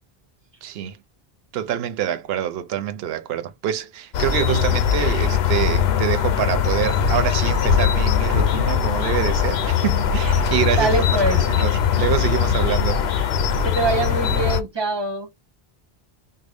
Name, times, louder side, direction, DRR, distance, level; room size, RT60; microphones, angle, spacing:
voice 1, 0.6-1.0 1.5-11.0 11.5-13.0, right 10 dB, 75° right, 0.8 m, -26 dB
sound 1, 4.1-14.6, left 8 dB, 80° left, 0.8 m, -20 dB
voice 2, 10.8-11.6 13.1-13.2 13.6-15.3, right 3 dB, 30° right, 0.8 m, -24 dB
3.7 x 2.0 x 3.3 m
omnidirectional pair, 1.0 m